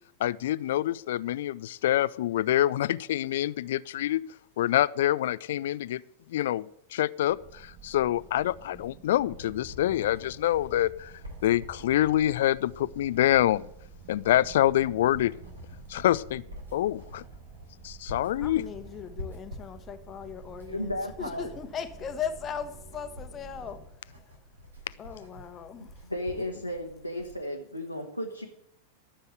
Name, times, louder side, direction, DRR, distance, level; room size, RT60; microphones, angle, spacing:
voice 1, 0.2-4.2 4.6-6.0 6.3-11.1 11.4-13.7 14.1-15.3 15.9-16.4 16.7-17.2 17.8-18.6, left 13 dB, 55° left, 19 dB, 0.4 m, -26 dB
sound 1, 7.2-23.8, right 5 dB, 40° right, 5.9 m, -50 dB
Writing, 9.3-27.4, left 1 dB, 75° right, 3.8 m, -48 dB
voice 2, 18.4-24.5 25.0-26.1, left 7 dB, 25° left, 9 dB, 1.2 m, -38 dB
voice 3, 20.7-21.5 26.1-28.5, left 1 dB, 90° left, -1 dB, 1.3 m, -34 dB
13.5 x 7.0 x 8.1 m, 0.76 s
figure-of-eight pair, 90°, 0 cm